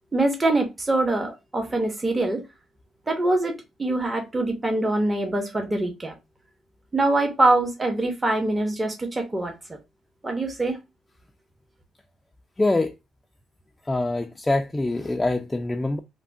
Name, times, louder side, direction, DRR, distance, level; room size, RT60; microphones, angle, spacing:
voice 1, 0.1-2.4 3.1-6.1 6.9-9.5 10.2-10.8, right 2 dB, 20° right, 0.8 m, -24 dB
voice 2, 12.6-12.9 13.9-16.0, left 2 dB, 15° left, 0.3 m, -24 dB
3.3 x 2.1 x 2.5 m
cardioid pair, 90°, 0 cm